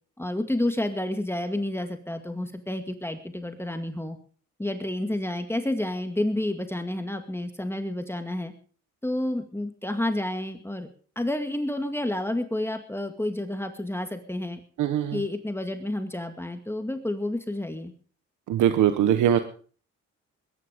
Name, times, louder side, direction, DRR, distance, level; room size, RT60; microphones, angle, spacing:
voice 1, 0.2-4.2 4.6-8.5 9.0-10.9 11.2-14.6 15.1-17.9, left 1 dB, 10° left, 6 dB, 2.1 m, -30 dB
voice 2, 14.8-15.2 18.5-19.4, right 10 dB, 80° right, 9 dB, 1.3 m, -21 dB
21.5 x 11.0 x 5.2 m, 0.43 s
cardioid pair, 90°, 30 cm